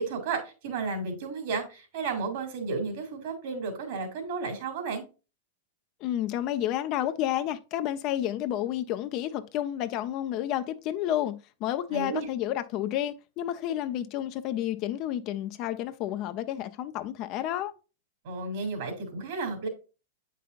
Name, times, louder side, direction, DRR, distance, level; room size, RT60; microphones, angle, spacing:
voice 1, 0.0-5.0 11.9-12.3 18.2-19.7, right 4 dB, 60° right, 2.7 m, -33 dB
voice 2, 6.0-17.7, left 12 dB, 45° left, 0.7 m, -30 dB
8.5 x 5.5 x 2.5 m
hypercardioid pair, 110°, 0 cm